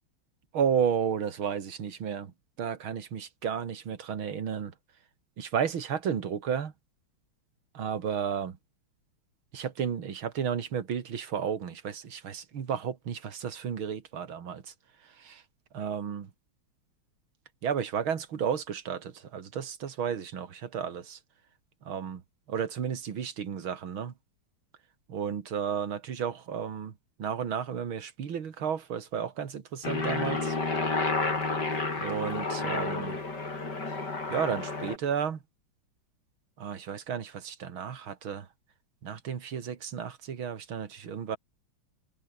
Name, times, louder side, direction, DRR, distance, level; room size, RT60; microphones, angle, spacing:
voice 1, 0.5-2.3 2.6-4.7 5.4-6.7 7.7-8.6 9.5-14.7 15.0-15.4 15.7-16.3 17.6-21.2 21.8-22.2 22.5-24.1 25.1-26.9 27.2-30.6 32.0-33.2 34.3-35.4 36.6-38.5 39.0-41.4, right 7 dB, 70° right, 2.8 m, -32 dB
Aircraft, 29.8-35.0, left 3 dB, 50° left, 5.1 m, -30 dB
omnidirectional pair, 2.4 m